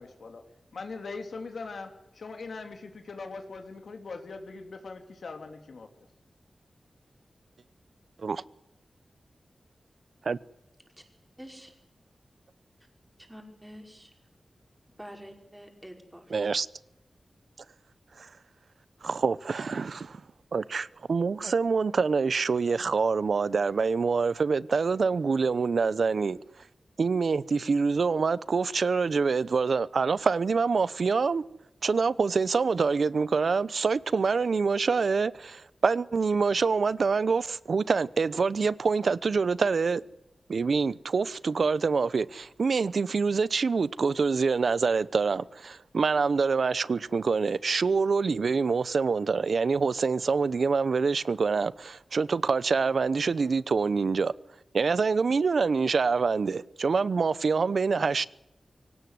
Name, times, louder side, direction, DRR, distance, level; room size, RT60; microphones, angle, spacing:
voice 1, 0.0-0.4 0.7-5.9, left 4 dB, 75° left, 3.3 m, -41 dB
voice 2, 11.4-11.7 13.2-14.1 15.0-16.5, equal, 10° right, 5.6 m, -47 dB
voice 3, 16.3-16.7 18.2-18.3 19.0-20.2 20.5-26.4 27.0-31.4 31.8-40.0 40.5-54.3 54.7-58.3, right 4 dB, 70° right, 0.8 m, -26 dB
24.0 x 18.0 x 9.6 m
wide cardioid pair, 100°, 0 cm